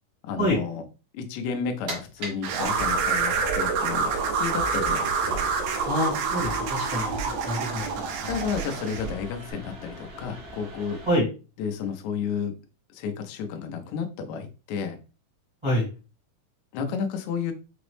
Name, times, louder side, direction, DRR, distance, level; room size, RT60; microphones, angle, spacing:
voice 1, 0.2-0.8 1.1-5.5 8.3-11.0 11.6-12.5 12.9-15.0 16.7-17.5, left 6 dB, 90° left, 5 dB, 1.6 m, -32 dB
sound 1, 1.5-11.2, right 1 dB, 55° right, 1.2 m, -44 dB
sound 2, 2.4-9.1, right 5 dB, 85° right, 2.4 m, -27 dB
sound 3, 2.7-9.5, right 3 dB, 70° right, 1.8 m, -41 dB
voice 2, 5.8-7.1 7.4-8.0 11.1-11.2 15.6-15.9, equal, 20° right, -7 dB, 0.7 m, -26 dB
5.8 x 2.0 x 3.1 m, 0.33 s
omnidirectional pair, 4.1 m